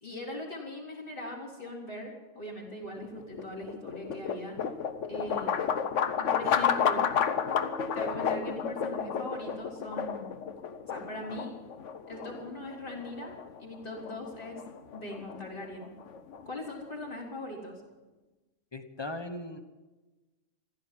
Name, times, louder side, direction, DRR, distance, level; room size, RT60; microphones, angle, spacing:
voice 1, 0.0-4.6 5.1-5.7 6.2-7.1 7.9-10.4 10.8-11.5 12.1-14.6 14.9-15.9 16.5-17.8, left 1 dB, 40° left, -2 dB, 3.7 m, -40 dB
sound 1, 3.0-17.1, left 7 dB, 70° left, 1.2 m, -32 dB
voice 2, 18.7-19.6, left 2 dB, 20° left, 7 dB, 1.2 m, -38 dB
15.0 x 12.5 x 7.5 m, 1.2 s
omnidirectional pair, 1.4 m